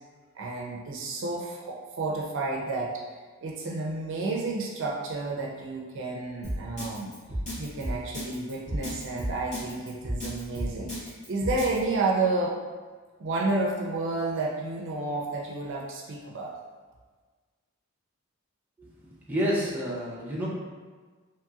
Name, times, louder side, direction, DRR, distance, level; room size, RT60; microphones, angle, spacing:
voice 1, 0.3-3.0 3.4-7.1 7.6-12.6 13.2-16.6, right 3 dB, 60° right, -2 dB, 0.5 m, -31 dB
Drum kit, 6.4-11.8, equal, 35° left, 1.4 m, -32 dB
voice 2, 19.3-20.5, equal, 10° right, -7 dB, 0.5 m, -29 dB
2.9 x 2.8 x 2.3 m, 1.4 s
head